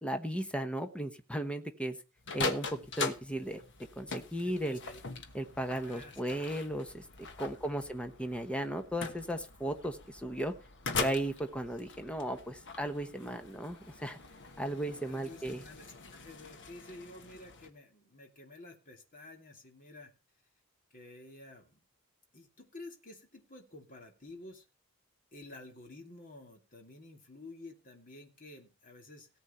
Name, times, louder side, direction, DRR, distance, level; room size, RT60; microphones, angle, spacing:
voice 1, 0.0-2.0 2.3-3.6 4.0-4.8 5.3-7.0 7.4-10.5 11.0-14.2 14.6-15.6, right 1 dB, 5° left, 7 dB, 1.1 m, -36 dB
sound 1, 2.2-17.7, left 4 dB, 55° left, 1.4 m, -42 dB
voice 2, 4.4-5.0 5.8-6.2 7.5-7.8 15.0-20.1 20.9-21.8 22.3-24.6 25.3-29.3, left 2 dB, 40° left, 3 dB, 2.7 m, -51 dB
17.5 x 8.1 x 4.4 m, 0.33 s
head